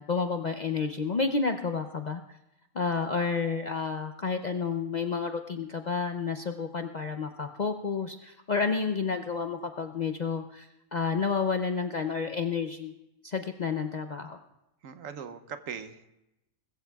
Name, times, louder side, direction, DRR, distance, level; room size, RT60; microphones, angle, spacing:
voice 1, 0.0-2.2 2.7-12.9 13.2-14.4, left 5 dB, 50° left, 6 dB, 0.5 m, -30 dB
voice 2, 14.8-16.1, right 7 dB, 75° right, 10 dB, 1.2 m, -40 dB
21.0 x 14.5 x 2.3 m, 0.90 s
omnidirectional pair, 1.4 m